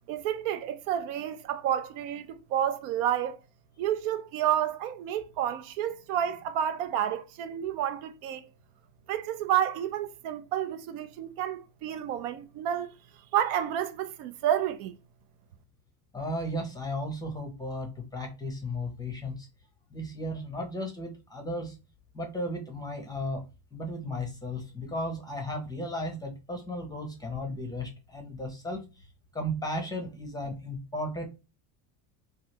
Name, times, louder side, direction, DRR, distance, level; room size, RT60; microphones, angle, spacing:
voice 1, 0.1-3.4 3.8-8.5 9.1-12.9 13.3-14.9, right 10 dB, 75° right, 0.6 m, -30 dB
voice 2, 16.1-19.5 19.9-21.7 22.1-23.4 23.7-29.1 29.3-31.3, left 1 dB, 10° left, 0.6 m, -35 dB
3.1 x 2.4 x 2.7 m
supercardioid pair, 125°, 48 cm